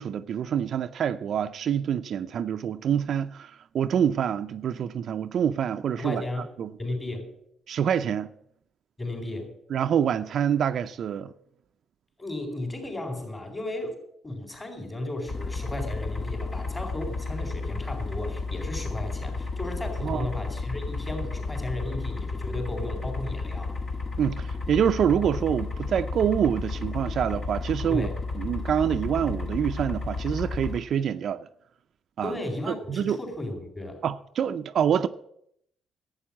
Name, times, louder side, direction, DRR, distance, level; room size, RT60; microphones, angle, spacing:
voice 1, 0.0-6.2 6.6-6.7 7.7-8.3 9.7-11.3 20.0-20.3 24.2-28.1 28.4-31.5 32.2-32.3 32.7-33.2 34.0-35.1, right 8 dB, 65° right, 0.5 m, -26 dB
voice 2, 6.0-6.5 6.8-7.3 9.0-9.5 12.2-23.7 27.9-28.2 32.2-34.0, left 1 dB, 25° left, 4.2 m, -34 dB
sound 1, 15.3-30.8, left 3 dB, 45° left, 1.6 m, -32 dB
11.5 x 8.7 x 7.4 m
cardioid pair, 90°, 0 cm